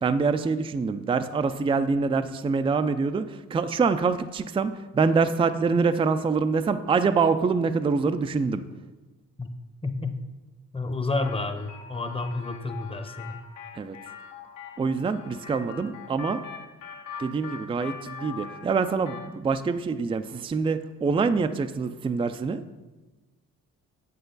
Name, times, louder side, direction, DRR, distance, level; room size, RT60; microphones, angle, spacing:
voice 1, 0.0-8.6 13.8-14.0 14.8-16.4 17.2-22.6, right 4 dB, 20° right, 10 dB, 0.4 m, -25 dB
voice 2, 9.8-10.2 10.7-13.4, left 3 dB, 20° left, 7 dB, 0.8 m, -30 dB
sound 1, 11.2-19.4, left 6 dB, 80° left, 1.3 m, -42 dB
8.1 x 7.6 x 4.0 m, 1.2 s
cardioid pair, 90°, 30 cm